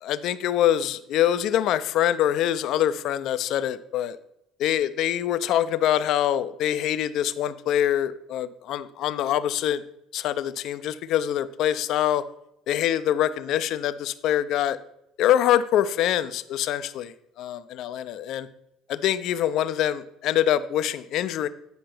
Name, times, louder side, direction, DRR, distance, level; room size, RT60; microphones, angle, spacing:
voice 1, 0.0-4.2 4.6-9.8 10.1-12.2 12.7-14.8 15.2-18.5 18.9-21.5, left 11 dB, 60° left, 14 dB, 0.4 m, -24 dB
9.3 x 5.3 x 4.3 m, 0.82 s
figure-of-eight pair, 55°, 0 cm